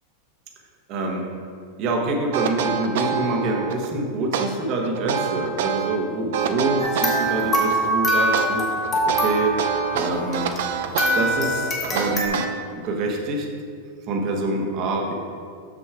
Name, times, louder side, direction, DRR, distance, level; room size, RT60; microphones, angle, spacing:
voice 1, 0.9-1.2 1.8-9.6 9.9-10.5 11.1-12.4 12.7-13.5 14.1-15.1, right 2 dB, 45° right, 0 dB, 1.3 m, -26 dB
sound 1, 2.3-3.9 4.3-6.0 6.3-7.9 8.3-12.9, right 7 dB, 70° right, 0.6 m, -26 dB
sound 2, 6.8-10.7 11.0-12.3, equal, 25° left, 1.8 m, -24 dB
6.3 x 6.2 x 4.9 m, 2.2 s
supercardioid pair, 130°, 0 cm